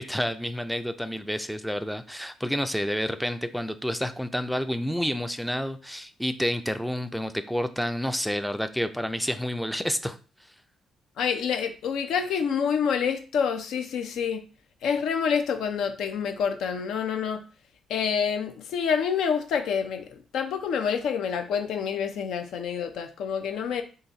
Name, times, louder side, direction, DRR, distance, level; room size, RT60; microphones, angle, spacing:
voice 1, 0.0-10.2, equal, ahead, 9 dB, 0.3 m, -29 dB
voice 2, 11.2-14.4 14.8-17.4 17.9-23.8, left 7 dB, 80° left, 7 dB, 0.5 m, -27 dB
3.9 x 2.5 x 3.9 m, 0.37 s
cardioid pair, 90°, 0 cm